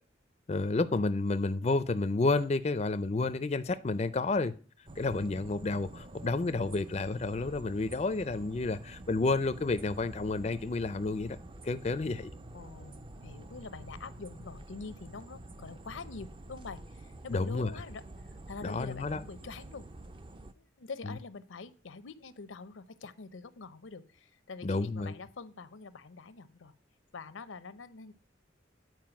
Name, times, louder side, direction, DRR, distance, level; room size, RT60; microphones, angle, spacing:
voice 1, 0.5-4.5 5.0-11.4 11.6-12.3 17.3-17.7 18.6-19.2 24.6-25.1, left 3 dB, 35° left, 12 dB, 0.4 m, -30 dB
sound 1, 4.9-20.5, right 1 dB, 25° right, 0.4 m, -48 dB
voice 2, 12.5-19.9 20.5-26.7 27.1-28.1, left 4 dB, 90° left, 14 dB, 0.7 m, -45 dB
9.3 x 4.6 x 5.9 m, 0.38 s
head